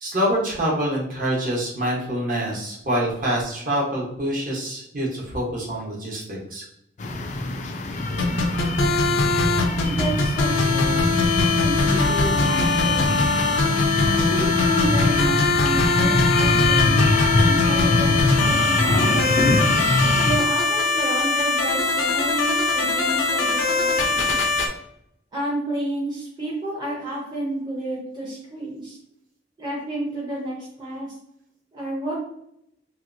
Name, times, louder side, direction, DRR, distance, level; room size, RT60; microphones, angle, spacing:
voice 1, 0.0-6.6 22.9-23.0, equal, 45° right, -4 dB, 1.0 m, -26 dB
sound 1, 7.0-20.4, left 2 dB, 40° left, 0.3 m, -23 dB
sound 2, 8.2-24.7, left 3 dB, 85° left, 0.6 m, -22 dB
voice 2, 9.8-11.0 11.6-13.5 14.1-17.0 17.4-19.5 20.2-24.4 25.3-29.0 29.6-31.2 31.7-32.1, right 1 dB, 25° right, -7 dB, 0.7 m, -31 dB
2.9 x 2.8 x 2.5 m, 0.76 s
head